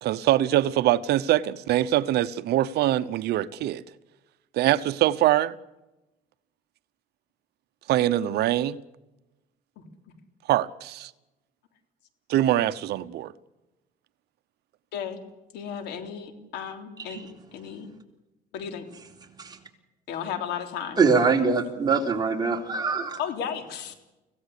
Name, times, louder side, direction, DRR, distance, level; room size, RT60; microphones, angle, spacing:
voice 1, 0.0-3.8 4.5-5.5 7.9-8.8 10.5-11.1 12.3-13.3, right 13 dB, 75° right, 0.9 m, -23 dB
voice 2, 14.9-15.2 15.5-17.9 18.5-18.8 20.1-21.0 23.2-23.9, left 8 dB, 85° left, 3.5 m, -34 dB
voice 3, 21.0-23.2, right 4 dB, 25° right, 3.8 m, -23 dB
25.0 x 17.0 x 8.4 m
cardioid pair, 110°, 17 cm